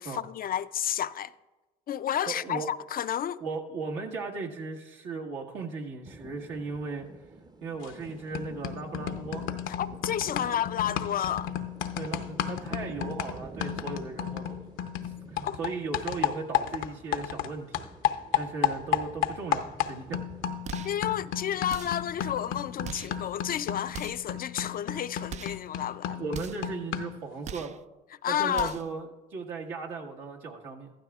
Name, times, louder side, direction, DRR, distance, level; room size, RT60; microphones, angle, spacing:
voice 1, 0.0-1.3 1.9-3.4 9.8-11.5 15.4-15.6 20.8-26.2 28.2-28.8, left 10 dB, 45° left, 0.4 m, -31 dB
voice 2, 2.3-2.7 3.4-7.1 7.6-9.5 11.9-14.6 15.3-17.7 18.3-20.2 26.1-27.8 28.3-30.9, right 4 dB, 75° right, 1.7 m, -36 dB
sound 1, 6.1-24.2, right 3 dB, 20° right, 0.7 m, -49 dB
sound 2, 7.8-8.1 8.3-17.5 17.7-27.2, left 10 dB, 75° left, 0.7 m, -33 dB
sound 3, 20.6-21.0 21.7-22.1 22.8-23.2 23.9-24.3 25.3-25.7 26.3-26.7 27.4-27.8 28.5-29.0, right 7 dB, 35° right, 0.4 m, -41 dB
15.0 x 12.5 x 2.4 m
supercardioid pair, 70°, 20 cm